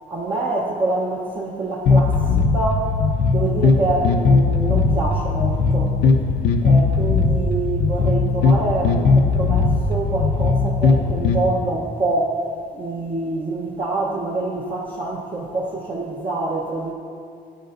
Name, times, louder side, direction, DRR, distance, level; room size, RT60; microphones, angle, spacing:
voice 1, 0.1-2.9 3.3-6.0 6.6-12.4 12.7-16.9, right 2 dB, 30° right, -3 dB, 1.0 m, -26 dB
sound 1, 1.9-11.4, left 4 dB, 75° left, 0.7 m, -18 dB
14.0 x 8.3 x 2.6 m, 2.4 s
cardioid pair, 110°, 17 cm